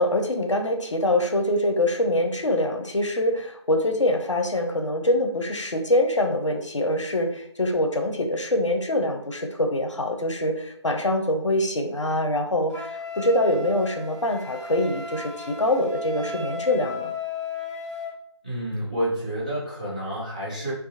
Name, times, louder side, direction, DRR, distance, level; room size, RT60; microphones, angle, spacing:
voice 1, 0.0-17.1, left 1 dB, 90° left, 5 dB, 0.5 m, -24 dB
Wind instrument woodwind instrument, 12.7-18.2, left 3 dB, 5° left, 0.8 m, -35 dB
voice 2, 18.4-20.7, right 1 dB, 15° right, -6 dB, 0.4 m, -29 dB
2.4 x 2.2 x 2.7 m, 0.70 s
figure-of-eight pair, 155°, 15 cm